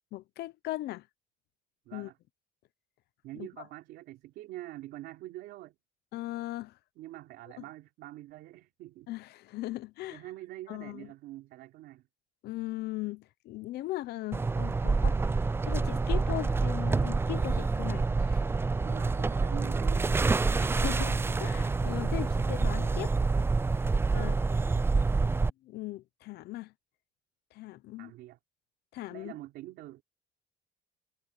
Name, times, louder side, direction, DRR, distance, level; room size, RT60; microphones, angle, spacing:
voice 1, 0.1-1.1 1.9-2.1 3.3-3.5 6.1-6.8 9.1-10.2 10.7-11.1 12.4-15.2 15.6-18.4 20.6-23.1 24.1-24.4 25.6-26.7 27.5-28.1 28.9-29.3, left 17 dB, 75° left, 0.9 m, -38 dB
voice 2, 1.8-2.2 3.2-5.8 7.0-9.1 10.1-12.1 18.5-20.2 24.0-24.3 28.0-28.4 29.1-30.0, right 16 dB, 85° right, 3.4 m, -45 dB
sound 1, 14.3-25.5, right 4 dB, 15° right, 0.4 m, -27 dB
cardioid pair, 110°, 17 cm